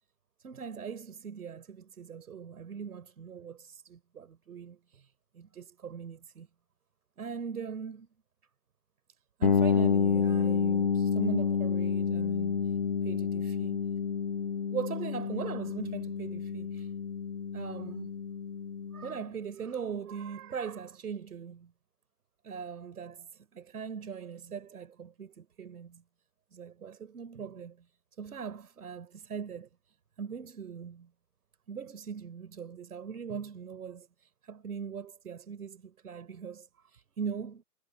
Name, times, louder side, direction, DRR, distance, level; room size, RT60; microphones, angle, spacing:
voice 1, 0.4-6.5 7.2-8.1 9.4-12.7 13.0-13.8 14.7-16.9 17.5-18.1 18.9-21.7 22.4-26.0 26.5-27.9 28.2-29.7 30.2-31.1 31.7-37.6, right 6 dB, 65° right, 5.2 m, -40 dB
sound 1, 9.4-19.1, left 6 dB, 35° left, 0.5 m, -29 dB
hypercardioid pair, 170°, 48 cm